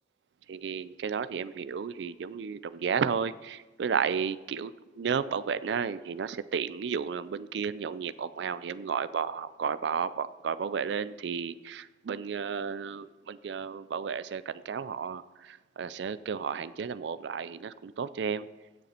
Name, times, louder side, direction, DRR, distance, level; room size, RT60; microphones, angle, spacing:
voice 1, 0.5-18.5, right 6 dB, 65° right, 14 dB, 0.4 m, -33 dB
16.5 x 6.6 x 4.3 m, 1.1 s
head